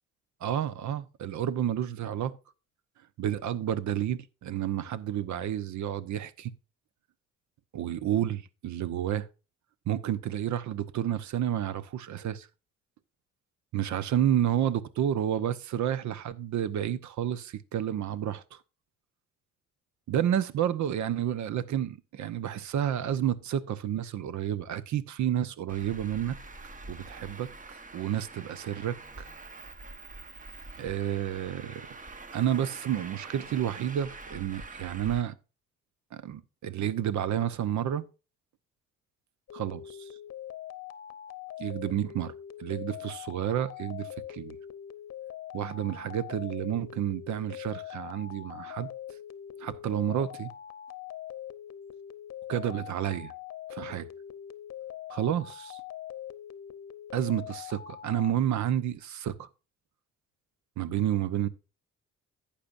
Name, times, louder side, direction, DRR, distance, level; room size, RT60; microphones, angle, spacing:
voice 1, 0.4-2.3 3.2-6.5 7.7-9.3 9.9-12.5 13.7-18.6 20.1-26.4 26.9-29.3 30.8-31.9 32.3-35.3 36.1-38.0 39.5-40.1 41.6-42.3 42.6-44.6 45.5-48.9 49.6-50.5 52.5-53.3 53.7-54.1 55.1-55.8 57.1-59.5 60.8-61.5, right 10 dB, 70° right, 0.9 m, -30 dB
Traffic noise roadway noise, 25.7-35.2, right 3 dB, 25° right, 1.1 m, -45 dB
sound 1, 39.5-58.3, left 11 dB, 55° left, 0.8 m, -43 dB
11.5 x 8.5 x 2.5 m
cardioid pair, 90°, 30 cm